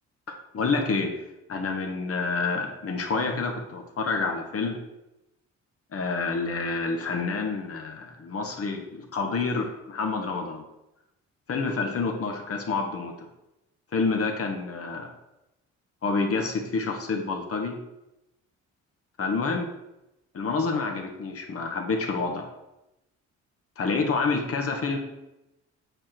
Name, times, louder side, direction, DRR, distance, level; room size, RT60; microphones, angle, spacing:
voice 1, 0.5-1.1 1.5-4.8 5.9-10.6 11.5-13.1 13.9-15.1 16.0-17.8 19.2-19.7 20.3-22.5 23.8-25.0, left 4 dB, 50° left, 3 dB, 1.6 m, -28 dB
8.7 x 4.9 x 4.5 m, 0.91 s
cardioid pair, 90°, 30 cm